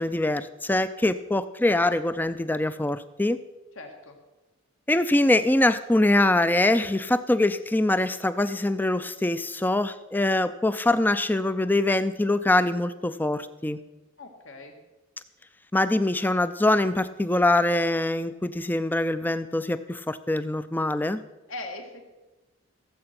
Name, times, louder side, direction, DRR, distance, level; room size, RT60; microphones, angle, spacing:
voice 1, 0.0-3.4 4.9-13.8 15.7-21.2, left 2 dB, 10° left, 13 dB, 0.4 m, -23 dB
voice 2, 3.8-4.2 14.2-14.8 21.5-22.0, left 2 dB, 70° left, 4 dB, 1.8 m, -40 dB
16.0 x 7.7 x 5.9 m, 1.1 s
head